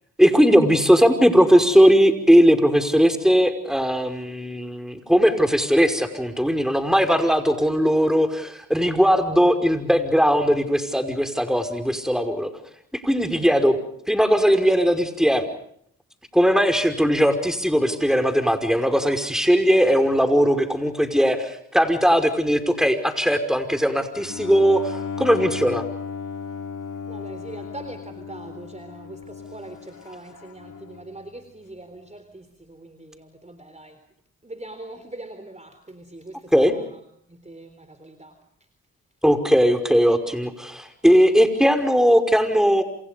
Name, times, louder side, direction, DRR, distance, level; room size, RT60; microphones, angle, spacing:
voice 1, 0.2-12.5 13.0-13.8 14.1-15.5 16.3-25.8 36.5-36.7 39.2-42.8, equal, ahead, 7 dB, 5.5 m, -19 dB
Bowed string instrument, 24.1-31.2, left 6 dB, 55° left, 2.9 m, -35 dB
voice 2, 27.1-29.2 29.5-29.8 30.1-32.4 33.5-33.9 34.5-36.3 37.5-37.7 38.2-38.3, right 2 dB, 20° right, 9 dB, 3.7 m, -40 dB
28.0 x 28.0 x 5.3 m, 0.68 s
supercardioid pair, 40°, 37 cm